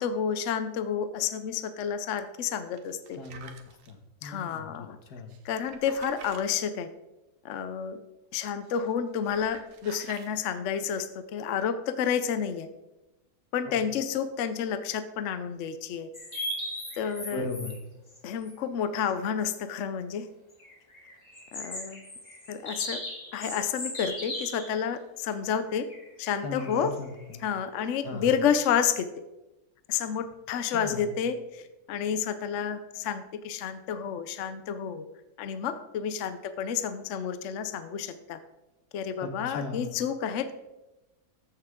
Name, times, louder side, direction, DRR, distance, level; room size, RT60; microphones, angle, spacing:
voice 1, 0.0-3.2 4.2-5.0 5.4-6.9 7.4-8.0 8.3-12.7 13.5-16.1 17.0-17.5 18.2-20.3 21.5-22.0 22.5-23.0 23.3-25.9 26.2-26.9 27.4-29.1 29.9-31.6 31.9-35.0 35.4-38.4 38.9-40.5, left 7 dB, 60° left, 10 dB, 0.9 m, -30 dB
sound 1, 2.7-3.9 5.3-6.4 8.6-8.9 9.2-10.3, right 6 dB, 60° right, 1.2 m, -49 dB
voice 2, 3.2-5.4 13.7-13.8 17.3-17.8 26.4-27.4 28.0-28.4 30.7-31.2 39.2-39.9, left 3 dB, 85° left, 5 dB, 1.8 m, -38 dB
sound 2, 16.1-17.8 18.1-18.2 18.4-18.5 19.0-19.1 20.5-24.7 25.7-28.3, left 1 dB, 25° left, 2.1 m, -38 dB
14.0 x 6.7 x 3.6 m, 0.99 s
omnidirectional pair, 1.6 m